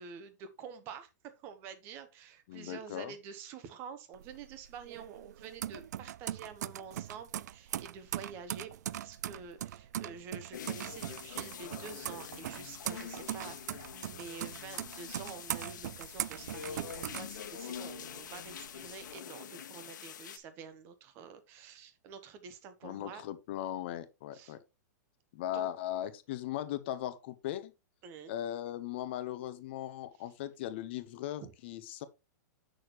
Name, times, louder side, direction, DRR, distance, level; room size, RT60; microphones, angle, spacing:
voice 1, 0.0-23.2 24.3-24.6 25.5-25.7 28.0-28.3 31.4-31.5, right 6 dB, 25° right, 1.0 m, -48 dB
voice 2, 2.5-3.1 22.8-24.6 25.3-27.7 28.3-32.0, left 12 dB, 35° left, 0.8 m, -38 dB
sound 1, 4.1-18.0 18.4-19.2, right 11 dB, 65° right, 0.4 m, -40 dB
sound 2, 10.5-20.4, left 8 dB, 90° left, 1.3 m, -45 dB
8.5 x 6.3 x 3.1 m
supercardioid pair, 180°, 10 cm